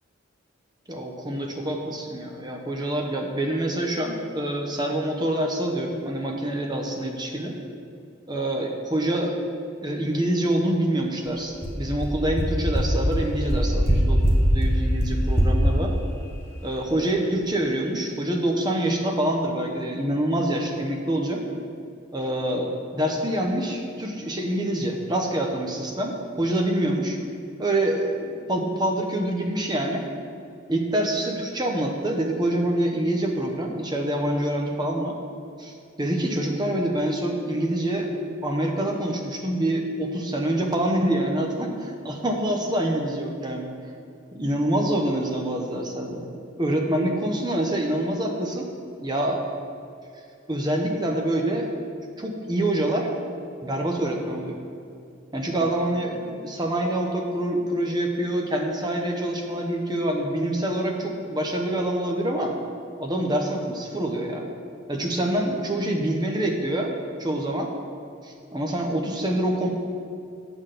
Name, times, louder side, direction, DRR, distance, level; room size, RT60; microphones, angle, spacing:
voice 1, 0.9-7.6 8.3-9.4 9.8-15.9 16.6-21.4 22.1-27.2 27.6-30.0 30.7-35.2 35.6-38.1 38.4-43.7 44.3-46.3 46.6-48.7 49.0-49.4 50.5-51.7 52.2-53.1 53.6-54.6 55.3-62.5 63.0-64.4 64.9-66.9 67.2-67.7 68.2-69.7, right 1 dB, 20° right, 1 dB, 0.8 m, -26 dB
sound 1, 11.3-11.4 11.6-11.7 12.0-12.1 12.4-12.5 12.7-12.8 13.1-13.2 13.5-13.9 14.2-14.3 14.6-14.7 15.0-15.1 15.4-15.5, equal, 10° left, 0.9 m, -21 dB
8.0 x 3.9 x 6.6 m, 2.5 s
head